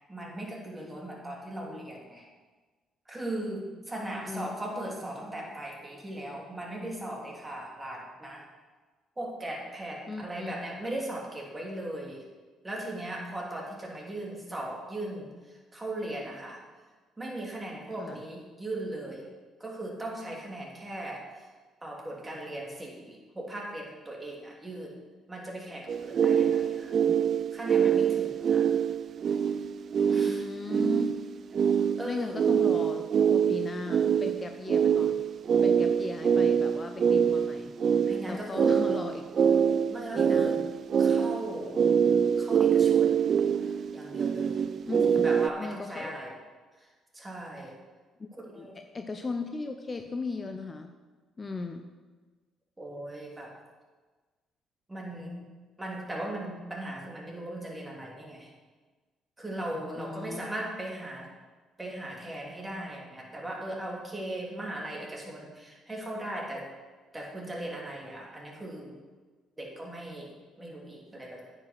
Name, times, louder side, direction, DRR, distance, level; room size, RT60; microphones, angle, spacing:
voice 1, 0.1-2.3 3.1-8.5 9.2-12.2 12.6-16.6 17.2-19.3 19.6-21.5 21.8-25.0 25.3-26.9 27.5-28.7 30.1-30.5 32.0-32.4 38.1-38.9 39.9-40.6 41.0-41.8 42.4-43.2 43.9-44.7 45.1-46.3 46.8-47.8 48.4-48.8 52.8-53.6 54.9-55.5 55.8-58.5 59.4-61.3 61.8-66.7 67.1-69.0 69.6-71.5, right 1 dB, 20° right, -2 dB, 2.8 m, -38 dB
voice 2, 10.1-10.5 18.0-18.2 26.8-27.2 30.3-31.1 31.7-33.0 33.3-35.2 35.6-37.8 38.2-39.3 40.2-40.7 42.0-42.1 44.9-45.3 45.6-46.2 48.2-48.3 48.6-48.7 48.9-50.9 51.4-51.9 60.0-60.5, left 3 dB, 35° left, 6 dB, 0.7 m, -37 dB
sound 1, 25.9-45.5, right 7 dB, 55° right, 0.3 m, -25 dB
9.3 x 5.5 x 6.4 m, 1.3 s
hypercardioid pair, 50°, 0 cm